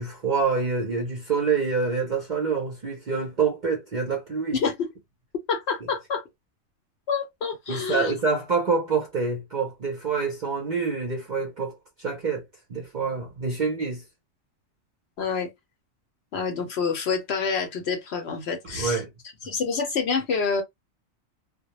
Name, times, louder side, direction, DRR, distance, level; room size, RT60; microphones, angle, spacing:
voice 1, 0.0-4.6 7.7-14.0 18.7-19.1, right 5 dB, 50° right, 0.5 m, -26 dB
voice 2, 4.5-4.9 5.3-6.2 7.1-8.1 15.2-15.5 16.3-19.0 19.5-20.6, left 5 dB, 60° left, 0.8 m, -27 dB
2.2 x 2.0 x 2.9 m
omnidirectional pair, 1.4 m